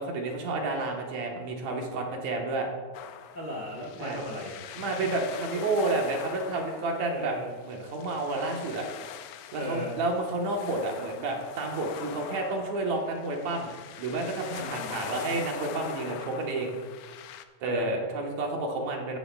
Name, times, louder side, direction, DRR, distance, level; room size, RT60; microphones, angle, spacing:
voice 1, 0.0-2.7 4.0-4.2 4.7-8.9 9.5-16.8 17.6-19.2, right 2 dB, 65° right, 1 dB, 2.4 m, -30 dB
sound 1, 2.9-17.4, left 9 dB, 90° left, 1.4 m, -43 dB
voice 2, 3.3-4.6 4.9-5.0 7.1-7.5 9.5-10.0 14.6-15.0 17.6-17.9, equal, 45° left, -4 dB, 1.4 m, -37 dB
16.0 x 9.9 x 2.3 m, 1.4 s
omnidirectional pair, 3.6 m